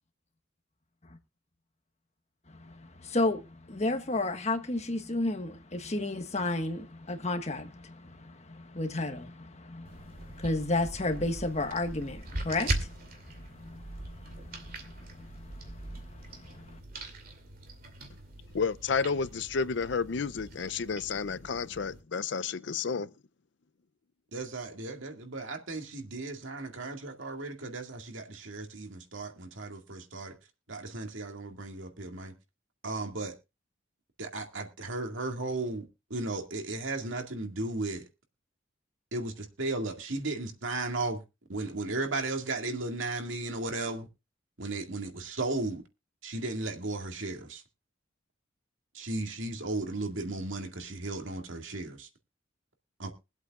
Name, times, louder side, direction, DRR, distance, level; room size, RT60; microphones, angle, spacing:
voice 1, 2.5-16.8, left 2 dB, 35° left, 1.3 m, -33 dB
sound 1, 9.8-22.0, right 2 dB, 45° right, 2.5 m, -41 dB
voice 2, 18.5-23.1, left 5 dB, 60° left, 0.5 m, -31 dB
voice 3, 24.3-30.4 30.7-32.3 32.8-33.3 34.2-38.1 39.1-41.2 41.5-44.1 44.6-45.8 46.2-47.6 48.9-52.1 53.0-53.1, right 2 dB, 80° right, 2.0 m, -35 dB
23.0 x 8.2 x 2.4 m
head